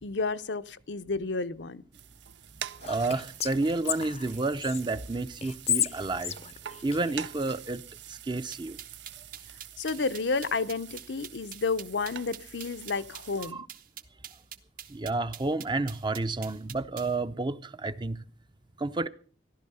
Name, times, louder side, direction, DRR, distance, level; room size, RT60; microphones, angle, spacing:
voice 1, 0.0-1.8 9.8-13.6, left 4 dB, 80° left, 0.7 m, -31 dB
sound 1, 1.9-13.5, right 9 dB, 80° right, 0.6 m, -45 dB
Whispering, 2.8-4.8 5.4-7.6, left 10 dB, 35° left, 0.6 m, -32 dB
voice 2, 2.8-6.3 6.8-7.8 8.1-8.8 13.4-13.7 14.9-18.2 18.8-19.1, right 3 dB, 25° right, 0.7 m, -30 dB
sound 2, 8.5-17.1, right 9 dB, 50° right, 1.1 m, -44 dB
15.5 x 12.0 x 5.5 m
head